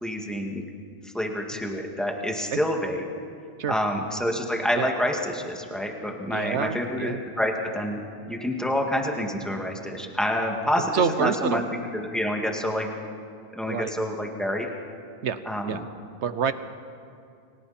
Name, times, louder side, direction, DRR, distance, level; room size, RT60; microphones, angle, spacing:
voice 1, 0.0-0.6 1.1-3.0 3.7-8.0 8.3-11.6 11.9-12.9 13.5-14.7 15.5-15.8, equal, ahead, 0 dB, 2.1 m, -27 dB
voice 2, 6.3-7.2 10.9-11.6 13.7-13.9 15.2-15.4 15.7-15.8 16.2-16.5, right 6 dB, 75° right, 12 dB, 1.2 m, -27 dB
30.0 x 24.0 x 4.4 m, 2.4 s
omnidirectional pair, 1.2 m